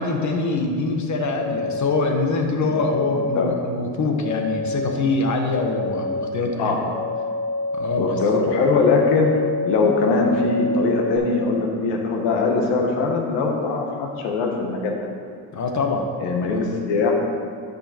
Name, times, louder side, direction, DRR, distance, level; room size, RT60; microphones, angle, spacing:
voice 1, 0.0-6.8 7.7-8.2 15.5-16.1 16.5-16.6, left 3 dB, 45° left, 3 dB, 1.3 m, -24 dB
sound 1, 1.3-2.1 2.7-3.5 4.2-4.9 5.5-6.2 6.9-11.2, left 2 dB, 60° left, 1.9 m, -27 dB
voice 2, 3.0-3.6 6.6-6.8 8.0-15.0 16.2-17.1, left 4 dB, 85° left, 1 dB, 1.6 m, -21 dB
12.5 x 5.6 x 4.4 m, 2.4 s
cardioid pair, 105°, 42 cm